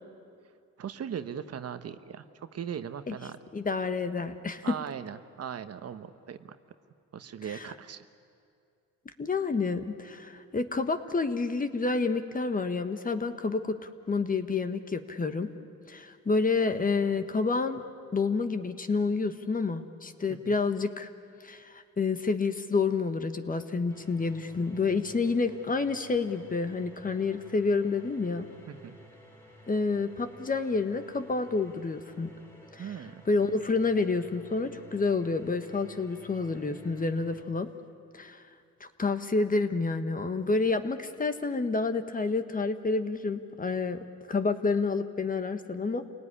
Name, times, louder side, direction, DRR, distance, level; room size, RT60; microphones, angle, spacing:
voice 1, 0.8-3.4 4.6-6.5 7.1-8.1 20.4-20.5 28.7-29.0 32.8-33.2, right 8 dB, 55° right, 10 dB, 1.1 m, -39 dB
voice 2, 3.5-4.8 7.5-7.7 9.2-15.5 15.9-17.8 18.1-21.1 21.4-28.5 29.7-32.3 32.7-32.9 33.2-37.7 38.1-38.4 38.8-44.0 44.3-46.0, left 4 dB, 30° left, 9 dB, 1.4 m, -29 dB
sound 1, 23.9-37.4, right 1 dB, 10° left, 3.8 m, -54 dB
27.5 x 18.0 x 10.0 m, 2.4 s
cardioid pair, 90°, 30 cm